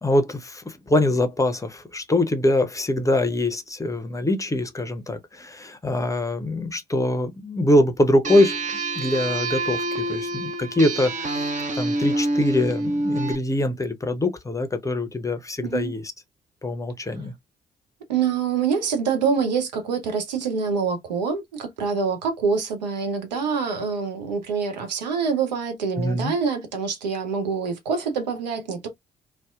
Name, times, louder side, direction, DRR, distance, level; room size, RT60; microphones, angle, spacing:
voice 1, 0.0-8.6 9.0-11.5 11.7-16.1 16.6-17.3 26.0-26.3, left 1 dB, 15° left, 0.6 m, -23 dB
sound 1, 8.2-13.4, right 2 dB, 35° right, 0.7 m, -27 dB
voice 2, 18.1-28.9, right 5 dB, 85° right, 0.5 m, -25 dB
2.6 x 2.1 x 2.3 m
figure-of-eight pair, 40°, 21 cm